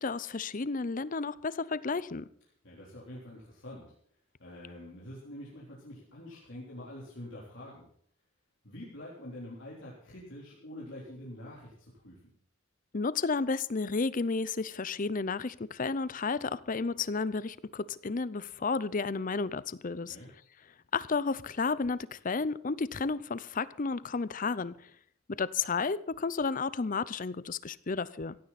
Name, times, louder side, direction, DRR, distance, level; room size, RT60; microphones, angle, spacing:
voice 1, 0.0-2.3 12.9-20.2 20.9-24.9 25.3-28.4, left 4 dB, 40° left, 18 dB, 0.6 m, -32 dB
voice 2, 2.6-3.9 4.4-7.9 8.6-12.3 20.1-20.3, left 1 dB, 60° left, -5 dB, 3.8 m, -46 dB
16.0 x 16.0 x 4.2 m, 0.63 s
head